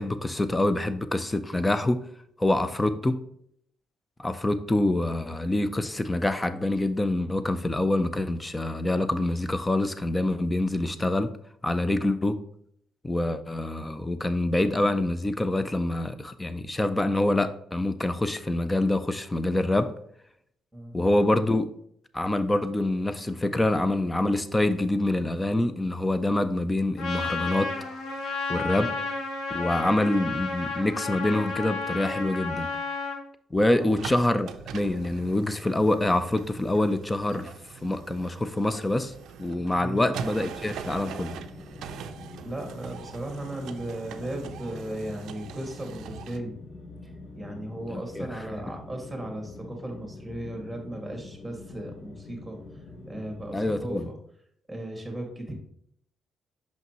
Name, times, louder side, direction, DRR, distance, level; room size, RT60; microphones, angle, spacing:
voice 1, 0.0-2.0 2.4-3.2 4.2-11.3 11.6-12.4 13.0-19.9 20.9-21.7 22.1-27.7 28.1-28.2 28.5-29.0 29.5-32.7 33.5-37.5 37.8-39.1 39.4-41.4 47.9-48.3 53.5-54.1, left 1 dB, 15° left, 11 dB, 0.5 m, -26 dB
Trumpet, 27.0-33.2, left 3 dB, 80° left, 1.3 m, -32 dB
sound 1, 33.8-46.4, right 8 dB, 80° right, 0.4 m, -42 dB
sound 2, 40.4-53.8, left 2 dB, 55° left, 0.9 m, -45 dB
voice 2, 42.4-46.5 47.0-54.2 54.7-55.5, right 1 dB, 5° right, 2 dB, 1.9 m, -36 dB
5.7 x 5.7 x 3.0 m, 0.69 s
cardioid pair, 90°, 0 cm